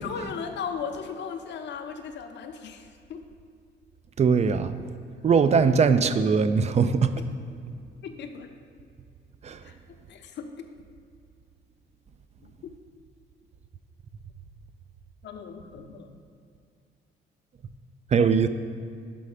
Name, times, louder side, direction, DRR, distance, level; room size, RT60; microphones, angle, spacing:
voice 1, 0.0-3.3 7.2-7.3 8.0-8.5 9.6-9.8 10.1-10.7 12.4-12.5 15.2-16.1, left 6 dB, 65° left, 6 dB, 0.7 m, -37 dB
voice 2, 4.2-4.8 5.2-7.1 9.4-9.6 18.1-18.5, right 5 dB, 35° right, 11 dB, 0.4 m, -21 dB
5.6 x 5.4 x 4.8 m, 2.4 s
cardioid pair, 90°, 20 cm